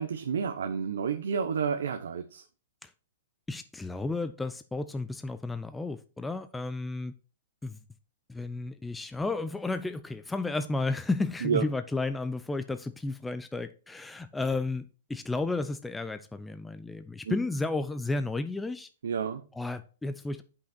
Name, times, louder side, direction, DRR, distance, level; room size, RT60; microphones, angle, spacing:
voice 1, 0.0-2.4 11.4-11.6 17.3-17.4 19.0-19.4, right 6 dB, 85° right, 0.8 m, -30 dB
voice 2, 3.5-7.1 7.6-7.8 8.3-18.9 19.5-20.4, left 3 dB, 5° left, 0.4 m, -32 dB
8.0 x 5.7 x 4.3 m
hypercardioid pair, 150°, 0 cm